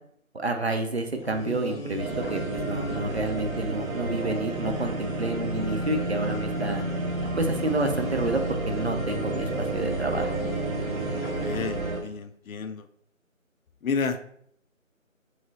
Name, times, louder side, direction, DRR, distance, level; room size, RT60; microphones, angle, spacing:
voice 1, 0.3-6.8 7.4-10.3, right 2 dB, 50° right, 5 dB, 0.6 m, -29 dB
sound 1, 1.1-12.1, left 1 dB, 45° left, 0.8 m, -36 dB
sound 2, 2.0-12.0, right 2 dB, 90° right, 0.8 m, -31 dB
voice 2, 11.4-12.9 13.8-14.2, left 5 dB, 80° left, 10 dB, 0.6 m, -30 dB
3.2 x 3.1 x 4.0 m, 0.67 s
figure-of-eight pair, 175°, 41 cm